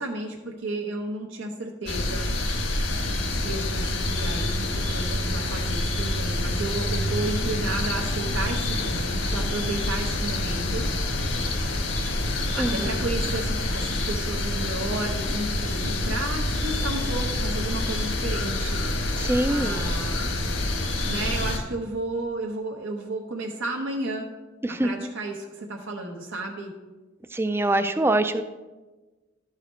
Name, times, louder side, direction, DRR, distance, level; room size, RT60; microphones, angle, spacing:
voice 1, 0.0-2.3 3.3-10.9 12.5-18.8 19.5-20.3 21.0-24.3 24.7-26.7, right 2 dB, 80° right, 0 dB, 0.9 m, -32 dB
sound 1, 1.9-21.6, left 1 dB, 75° left, 1.3 m, -27 dB
sound 2, 6.6-14.0, left 3 dB, 50° left, 0.6 m, -40 dB
voice 2, 12.6-13.0 19.2-19.9 24.6-25.1 27.3-28.4, right 1 dB, 10° right, 10 dB, 0.3 m, -24 dB
12.0 x 4.9 x 4.3 m, 1.2 s
head